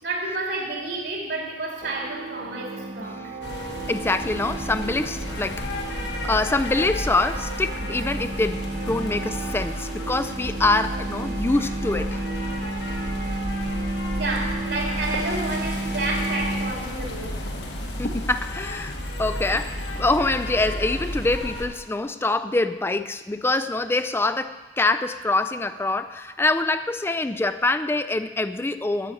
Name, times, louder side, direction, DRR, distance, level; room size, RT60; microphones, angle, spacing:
voice 1, 0.0-3.3 14.1-17.4, right 2 dB, 85° right, -1 dB, 3.3 m, -30 dB
sound 1, 1.8-16.7, right 2 dB, 55° right, 0.8 m, -33 dB
sound 2, 3.4-21.7, left 1 dB, 85° left, 1.9 m, -32 dB
voice 2, 3.9-5.7 6.2-12.3 18.0-29.1, left 2 dB, 15° left, 10 dB, 0.4 m, -25 dB
9.9 x 8.3 x 9.1 m, 1.2 s
head